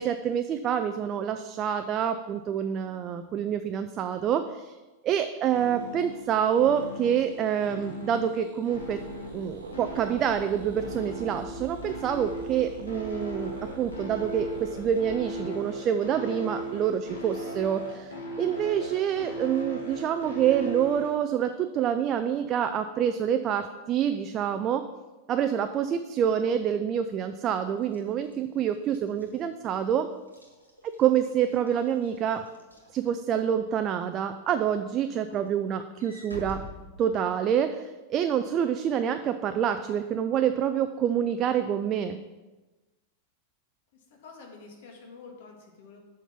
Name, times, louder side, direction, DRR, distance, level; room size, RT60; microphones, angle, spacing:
voice 1, 0.0-4.8 5.0-9.0 9.3-24.9 25.3-30.1 31.0-32.5 32.9-36.7 37.0-42.2, right 9 dB, 30° right, 8 dB, 0.4 m, -27 dB
sound 1, 5.5-21.1, equal, 75° left, 1.7 m, -38 dB
sound 2, 8.7-15.4, right 3 dB, 70° right, 0.9 m, -44 dB
Walk footsteps / Slam, 27.8-33.5 34.0-34.3 34.7-37.7, right 1 dB, 90° right, 1.5 m, -48 dB
voice 2, 43.9-46.0, left 4 dB, 55° left, 1 dB, 1.7 m, -48 dB
6.9 x 5.9 x 5.8 m, 1.2 s
figure-of-eight pair, 90°, 0 cm